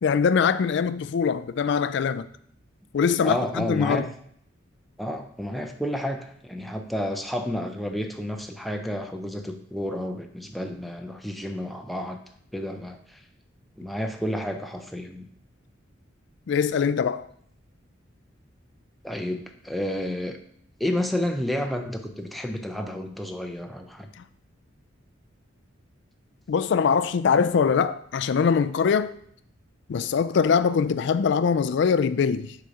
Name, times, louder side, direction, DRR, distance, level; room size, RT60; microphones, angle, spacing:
voice 1, 0.0-2.3 2.9-4.1 16.5-17.3 26.5-29.2 29.9-32.6, left 6 dB, 60° left, 0.3 m, -22 dB
voice 2, 3.2-4.0 5.0-12.2 12.5-13.2 13.8-15.3 19.0-20.4 20.8-24.1, left 1 dB, ahead, 0.5 m, -30 dB
6.4 x 4.1 x 4.8 m
head